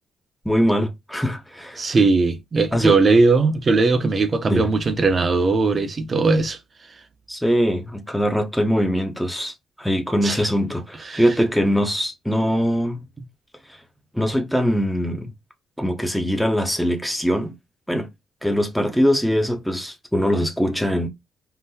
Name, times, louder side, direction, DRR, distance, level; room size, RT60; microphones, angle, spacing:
voice 1, 0.5-1.9 2.7-3.0 4.5-4.7 7.3-13.0 14.1-15.3 15.8-17.5 17.9-18.1 18.4-21.1, equal, ahead, 0.6 m, -22 dB
voice 2, 1.8-6.6 10.2-10.4 11.1-11.2, right 3 dB, 35° right, 0.6 m, -19 dB
3.8 x 2.1 x 2.7 m
cardioid pair, 90°, 0 cm